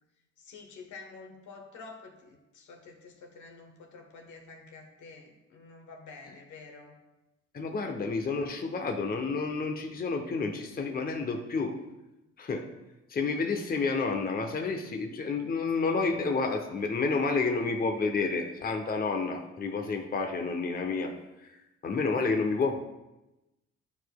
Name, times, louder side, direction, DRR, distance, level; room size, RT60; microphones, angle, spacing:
voice 1, 0.4-7.0, left 4 dB, 75° left, 2 dB, 1.2 m, -49 dB
voice 2, 7.5-11.8 12.4-12.7 13.1-21.1 21.4-21.5 21.8-22.8, left 4 dB, 30° left, 4 dB, 0.7 m, -30 dB
10.0 x 4.7 x 2.3 m, 0.98 s
cardioid pair, 90°, 30 cm